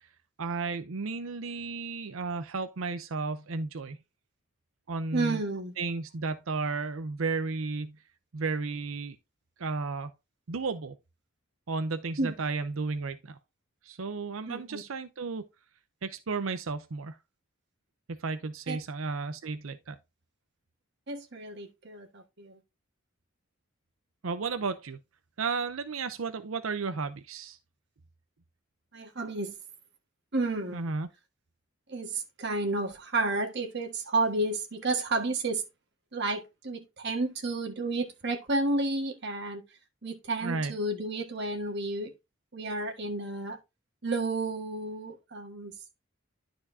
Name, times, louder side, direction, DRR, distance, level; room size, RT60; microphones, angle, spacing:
voice 1, 0.4-4.0 4.9-5.4 5.8-8.0 8.3-9.2 9.6-10.1 10.5-11.0 11.7-13.4 13.8-15.4 16.0-17.2 18.2-20.0 24.2-25.0 25.4-27.6 30.7-31.1 40.4-40.7, right 4 dB, 85° right, 0.7 m, -33 dB
voice 2, 5.1-5.7 12.2-12.3 14.5-14.8 18.7-18.8 21.1-22.6 28.9-29.5 30.3-30.8 31.9-35.6 36.1-39.6 40.0-42.1 42.5-43.6 44.0-45.7, right 2 dB, 55° right, 1.7 m, -31 dB
12.5 x 4.5 x 2.7 m
head